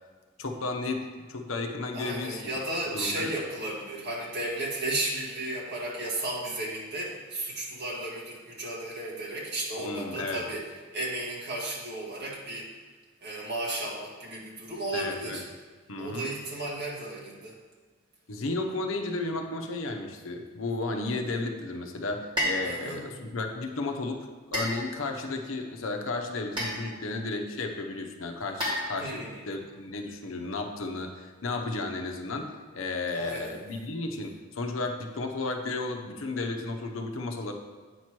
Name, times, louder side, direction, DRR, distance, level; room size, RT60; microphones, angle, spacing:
voice 1, 0.4-2.6 2.9-3.3 9.8-10.4 14.9-15.4 15.9-16.3 18.3-37.5, left 3 dB, 75° left, 4 dB, 0.7 m, -33 dB
voice 2, 1.9-10.6 10.9-12.7 13.2-15.4 16.0-17.6 22.6-23.0 29.0-29.5 33.1-33.5, right 2 dB, 55° right, -5 dB, 1.8 m, -34 dB
sound 1, 22.4-22.7 24.5-25.2 26.6-27.1 28.6-29.3, equal, 25° right, 1.9 m, -31 dB
8.9 x 3.0 x 6.0 m, 1.4 s
head